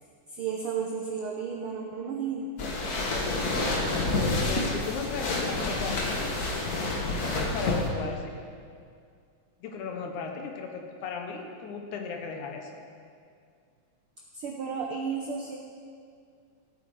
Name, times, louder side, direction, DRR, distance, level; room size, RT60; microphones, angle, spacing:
voice 1, 0.0-2.5 14.3-15.6, right 6 dB, 80° right, 1 dB, 1.2 m, -33 dB
sound 1, 2.6-7.9, left 2 dB, 55° left, 1.0 m, -28 dB
voice 2, 3.5-6.3 7.5-8.3 9.6-12.8, left 5 dB, 75° left, 3 dB, 2.5 m, -36 dB
16.5 x 8.4 x 4.8 m, 2.3 s
omnidirectional pair, 3.6 m